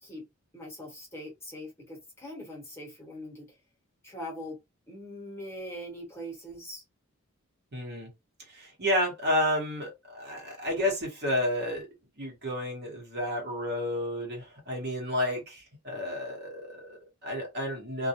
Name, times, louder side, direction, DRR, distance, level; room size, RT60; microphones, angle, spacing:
voice 1, 0.5-3.6 4.0-4.6 4.9-6.8, equal, 10° left, 1.1 m, -42 dB
voice 2, 7.7-8.1 8.5-11.9 12.2-18.1, left 1 dB, 50° right, 1.1 m, -31 dB
2.3 x 2.1 x 2.8 m
head